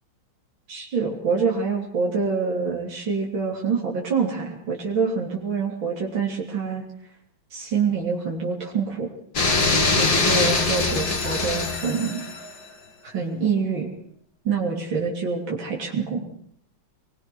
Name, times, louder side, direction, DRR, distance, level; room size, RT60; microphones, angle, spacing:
voice 1, 0.7-6.8 7.5-9.1 10.0-12.2 13.0-13.9 14.5-16.3, right 5 dB, 80° right, -1 dB, 4.0 m, -26 dB
sound 1, 9.4-12.5, left 3 dB, 70° left, 3.6 m, -22 dB
24.0 x 22.0 x 6.3 m, 0.69 s
omnidirectional pair, 2.1 m